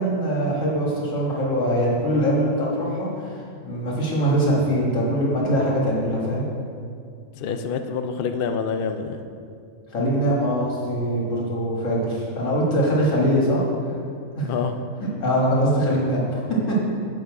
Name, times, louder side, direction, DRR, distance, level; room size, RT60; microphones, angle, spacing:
voice 1, 0.0-6.5 9.9-13.6 14.3-14.5 15.2-16.4, equal, 60° left, -4 dB, 2.1 m, -22 dB
voice 2, 7.4-9.2 14.4-14.8, left 6 dB, 85° left, 7 dB, 0.5 m, -27 dB
8.0 x 6.1 x 4.8 m, 2.3 s
omnidirectional pair, 1.6 m